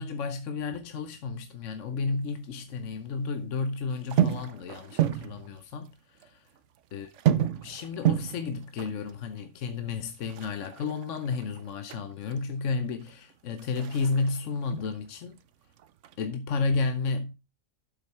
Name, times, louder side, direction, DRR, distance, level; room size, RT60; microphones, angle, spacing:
voice 1, 0.0-6.5 6.9-7.1 7.4-15.4 16.2-17.3, left 4 dB, 65° left, 1.1 m, -32 dB
sound 1, 0.6-2.3 2.5-3.5 3.9-5.9 6.2-6.3 6.6-12.4 12.8-15.4 15.7-16.2, right 11 dB, 65° right, 1.0 m, -31 dB
8.8 x 7.6 x 4.4 m
omnidirectional pair, 1.4 m